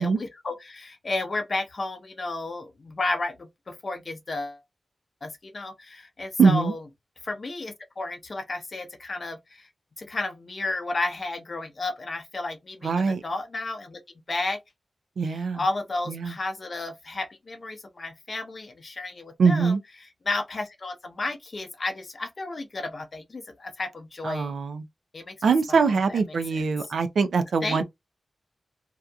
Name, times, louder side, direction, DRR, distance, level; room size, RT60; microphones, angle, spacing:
voice 1, 0.0-4.6 5.2-6.8 7.2-9.7 10.0-14.0 14.3-14.6 15.2-19.8 20.3-24.5 25.1-25.4 25.7-26.6 27.6-27.8, left 2 dB, 50° left, 0.7 m, -32 dB
voice 2, 6.4-6.7 12.8-13.2 15.2-15.6 16.1-16.4 19.4-19.8 24.2-24.8 25.4-27.8, right 5 dB, 85° right, 0.4 m, -22 dB
2.7 x 2.4 x 2.3 m
wide cardioid pair, 75°, 0 cm